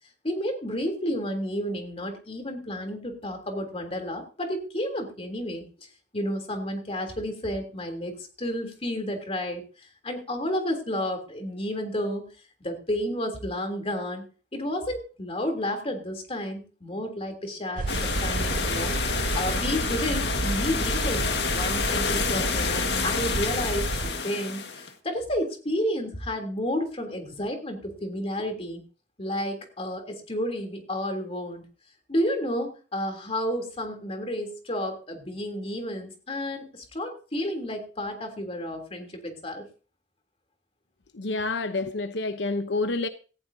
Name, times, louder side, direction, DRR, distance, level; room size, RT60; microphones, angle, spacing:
voice 1, 0.2-5.9 6.1-12.3 12.6-14.2 14.5-28.8 29.2-31.6 32.1-39.6, equal, 35° left, 3.3 m, -31 dB
sound 1, 17.8-24.1, right 3 dB, 50° right, 0.5 m, -31 dB
sound 2, 17.9-24.9, left 5 dB, 70° left, 1.8 m, -28 dB
voice 2, 41.1-43.1, left 3 dB, 90° left, 0.9 m, -28 dB
18.0 x 14.5 x 2.8 m
head